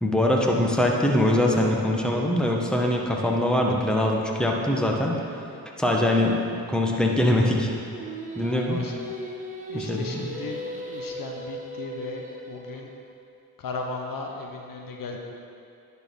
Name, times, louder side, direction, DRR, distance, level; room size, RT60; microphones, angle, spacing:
voice 1, 0.0-5.1 5.8-6.4 6.7-7.7 8.3-8.8 9.7-10.2, left 1 dB, ahead, -1 dB, 1.4 m, -22 dB
Singing, 7.9-13.1, equal, 20° right, 1.4 m, -37 dB
voice 2, 8.7-9.0 9.7-12.9 13.6-15.2, left 3 dB, 65° left, 2 dB, 0.9 m, -36 dB
10.5 x 4.4 x 5.5 m, 2.7 s
supercardioid pair, 50°, 37 cm